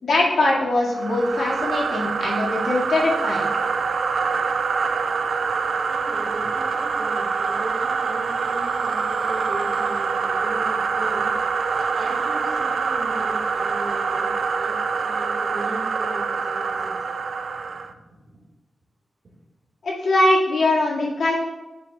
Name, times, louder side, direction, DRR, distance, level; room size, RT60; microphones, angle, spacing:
voice 1, 0.0-3.5 19.8-21.3, left 2 dB, 80° left, -4 dB, 2.1 m, -21 dB
sound 1, 0.9-17.9, right 5 dB, 70° right, 0.4 m, -25 dB
voice 2, 5.9-11.3 11.8-14.3 14.6-14.8 15.0-17.0, right 1 dB, 55° right, -7 dB, 2.0 m, -37 dB
11.0 x 7.5 x 2.4 m, 1.1 s
wide cardioid pair, 165°, 0 cm